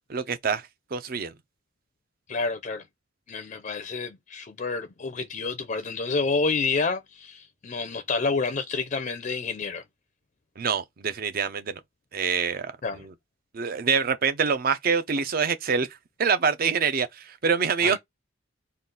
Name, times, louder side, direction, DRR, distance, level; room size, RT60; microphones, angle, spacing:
voice 1, 0.1-1.3 10.6-11.8 12.1-13.1 13.5-15.9 16.2-18.0, right 6 dB, 50° right, 0.5 m, -26 dB
voice 2, 2.3-2.8 3.3-9.8 12.8-13.1 17.8-18.0, left 4 dB, 40° left, 0.4 m, -29 dB
3.8 x 2.4 x 3.8 m
head